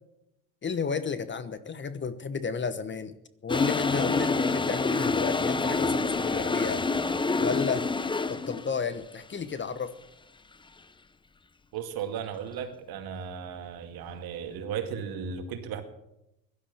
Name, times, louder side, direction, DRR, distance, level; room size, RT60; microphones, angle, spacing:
voice 1, 0.6-3.2 3.4-6.8 7.4-7.9 8.3-9.9, left 5 dB, 25° left, 13 dB, 1.1 m, -32 dB
Toilet flush, 3.5-8.7, left 3 dB, 10° left, 0.7 m, -27 dB
voice 2, 11.7-15.8, right 7 dB, 60° right, 7 dB, 2.3 m, -35 dB
16.5 x 12.0 x 7.2 m, 0.88 s
hypercardioid pair, 80°, 42 cm